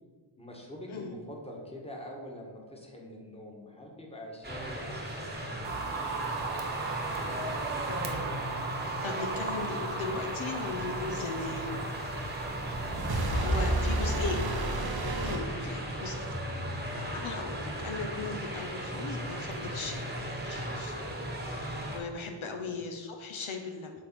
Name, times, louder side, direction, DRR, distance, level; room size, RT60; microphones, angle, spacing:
voice 1, 0.4-6.2 12.9-14.5 15.3-15.8 16.6-16.7 22.4-22.8, equal, 10° left, -1 dB, 1.4 m, -45 dB
sound 1, 4.4-22.0, right 1 dB, 20° right, 1.1 m, -36 dB
sound 2, 5.6-14.8, right 5 dB, 80° right, 1.0 m, -38 dB
voice 2, 7.9-8.4 8.7-11.9 13.3-14.4 15.2-16.1 16.9-20.1 20.4-21.1 21.9-23.9, left 4 dB, 70° left, 3 dB, 0.8 m, -38 dB
sound 3, 12.5-16.2, right 1 dB, 50° right, 0.9 m, -31 dB
6.4 x 3.6 x 6.0 m, 1.5 s
wide cardioid pair, 95°, 50 cm